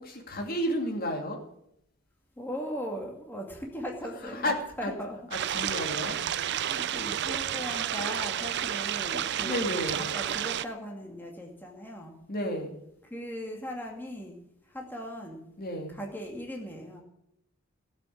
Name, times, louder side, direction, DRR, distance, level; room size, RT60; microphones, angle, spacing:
voice 1, 0.0-1.4 4.2-4.6 4.8-4.9 5.5-6.2 9.4-10.1 12.3-12.7 15.6-16.0, equal, 45° left, 3 dB, 2.6 m, -32 dB
voice 2, 2.4-5.2 6.4-12.2 13.1-14.4 14.6-15.5 15.9-17.0, equal, 10° left, 0 dB, 2.2 m, -39 dB
sound 1, 5.3-10.6, right 10 dB, 55° right, 0.5 m, -31 dB
17.0 x 7.8 x 8.7 m, 0.76 s
head